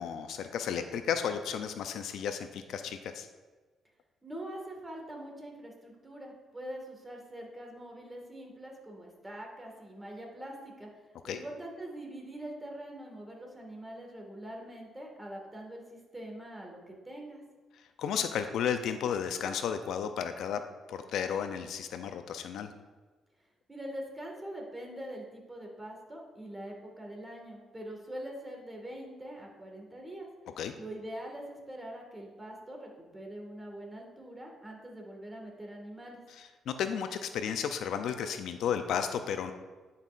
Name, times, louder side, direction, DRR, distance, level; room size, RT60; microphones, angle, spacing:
voice 1, 0.0-3.3 11.2-11.4 18.0-20.6 20.9-22.7 30.6-30.7 36.7-39.5, left 8 dB, 75° left, 8 dB, 0.5 m, -33 dB
voice 2, 4.2-10.9 11.2-17.4 23.7-30.3 30.8-36.2, right 1 dB, 15° right, 0 dB, 1.8 m, -43 dB
10.5 x 5.4 x 2.5 m, 1.3 s
cardioid pair, 90°, 0 cm